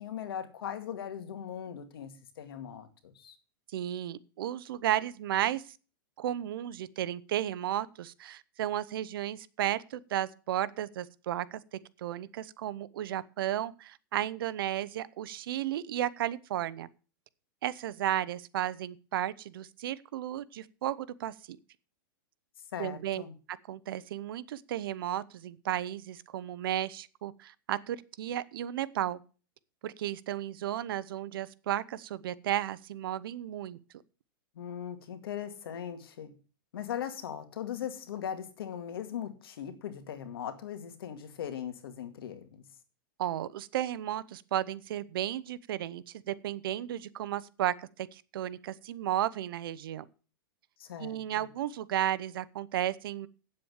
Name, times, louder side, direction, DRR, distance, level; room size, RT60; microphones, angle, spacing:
voice 1, 0.0-3.4 22.7-23.3 34.6-36.3 36.7-42.6 50.8-51.5, left 9 dB, 80° left, 9 dB, 2.2 m, -39 dB
voice 2, 3.7-5.6 6.2-16.9 17.6-21.6 22.8-23.2 23.5-29.2 29.8-33.8 43.2-50.0 51.0-53.3, right 12 dB, 70° right, 17 dB, 0.8 m, -34 dB
8.8 x 7.7 x 7.2 m, 0.37 s
supercardioid pair, 155°, 12 cm